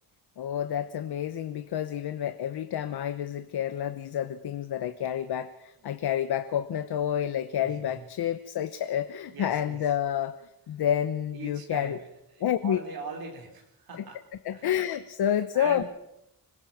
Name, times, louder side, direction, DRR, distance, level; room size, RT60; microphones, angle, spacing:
voice 1, 0.4-10.4 10.7-12.0 12.4-12.8 13.9-14.1 14.4-15.8, left 10 dB, 80° left, 11 dB, 1.1 m, -29 dB
voice 2, 7.6-8.0 9.3-9.8 11.3-12.1 12.4-14.2 14.5-14.7 15.5-15.9, right 4 dB, 70° right, 3 dB, 4.8 m, -41 dB
26.0 x 21.0 x 6.0 m, 0.88 s
wide cardioid pair, 150°, 38 cm